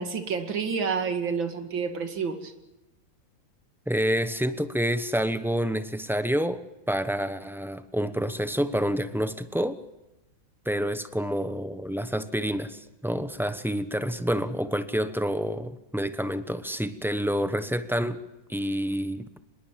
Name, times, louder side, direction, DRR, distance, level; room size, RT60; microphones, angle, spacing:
voice 1, 0.0-2.5, right 5 dB, 80° right, 7 dB, 3.0 m, -29 dB
voice 2, 3.9-6.6 6.9-9.8 10.6-18.2 18.5-19.3, equal, 5° right, 11 dB, 0.4 m, -28 dB
25.0 x 21.5 x 7.5 m, 0.96 s
omnidirectional pair, 2.1 m